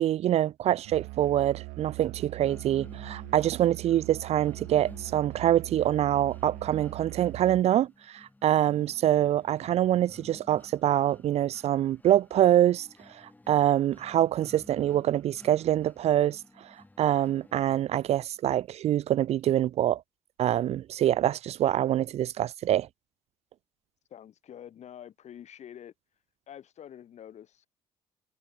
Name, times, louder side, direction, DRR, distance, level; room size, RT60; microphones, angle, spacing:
voice 1, 0.0-12.9 13.1-16.7 17.0-20.0 20.4-22.9, right 12 dB, 55° right, 0.4 m, -25 dB
Musical instrument, 0.8-7.8, right 26 dB, 80° right, 1.0 m, -42 dB
sound 1, 2.4-18.4, left 2 dB, 10° left, 2.1 m, -54 dB
voice 2, 24.1-25.9 26.5-27.7, left 10 dB, 60° left, 7.3 m, -47 dB
supercardioid pair, 65°, 13 cm